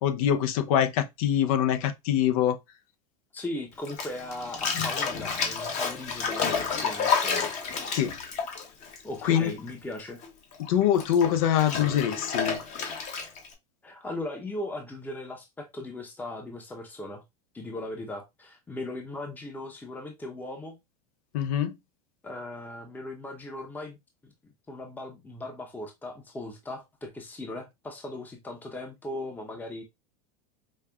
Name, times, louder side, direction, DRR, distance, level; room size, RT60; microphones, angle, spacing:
voice 1, 0.0-2.6 7.9-8.1 9.2-9.5 10.7-12.6 21.3-21.7, left 10 dB, 65° left, 0.7 m, -24 dB
voice 2, 3.3-7.5 9.0-10.2 13.8-17.2 17.5-20.8 22.2-24.0 24.2-24.3 24.7-29.8, left 1 dB, 10° left, 0.7 m, -38 dB
Bathtub (filling or washing), 3.8-9.7 10.0-13.5, left 5 dB, 40° left, 1.0 m, -30 dB
5.3 x 2.2 x 2.3 m
hypercardioid pair, 105°, 19 cm